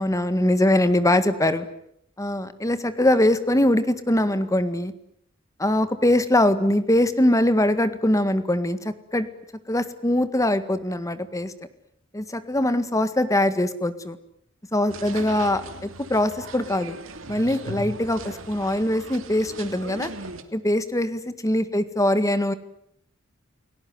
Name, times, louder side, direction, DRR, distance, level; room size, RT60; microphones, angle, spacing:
voice 1, 0.0-1.7 2.2-4.9 5.6-9.3 9.7-11.5 12.1-14.2 14.7-17.0 17.3-20.1 20.5-22.5, left 1 dB, 15° left, 12 dB, 1.8 m, -22 dB
sound 1, 14.9-20.4, right 2 dB, 70° right, 2.8 m, -38 dB
29.5 x 18.0 x 9.5 m, 0.73 s
head